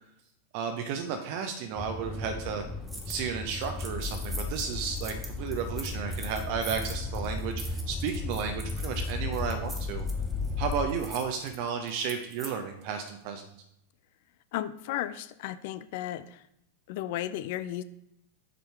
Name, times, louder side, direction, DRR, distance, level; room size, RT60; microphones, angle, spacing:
voice 1, 0.5-2.6 3.1-10.0 10.6-13.5, right 6 dB, 45° right, 5 dB, 0.7 m, -33 dB
sound 1, 1.8-10.9, left 3 dB, 10° left, 0.6 m, -35 dB
sound 2, 2.9-3.2 3.5-12.5, right 2 dB, 10° right, 1.6 m, -44 dB
voice 2, 14.5-16.4 16.9-17.8, left 12 dB, 50° left, 14 dB, 0.4 m, -34 dB
7.5 x 5.4 x 4.4 m, 0.80 s
figure-of-eight pair, 90°, 0 cm